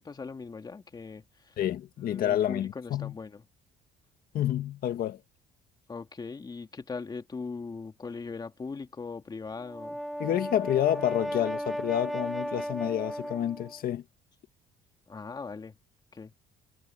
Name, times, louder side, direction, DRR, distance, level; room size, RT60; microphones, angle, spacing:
voice 1, 0.0-1.5 2.1-3.4 5.9-10.0 15.1-15.7 16.1-16.3, left 4 dB, 25° left, 2.0 m, -40 dB
voice 2, 1.6-3.1 4.3-5.2 10.2-14.0, left 11 dB, 60° left, 1.8 m, -29 dB
Brass instrument, 9.6-13.8, equal, ahead, 2.7 m, -35 dB
cardioid pair, 110°, 17 cm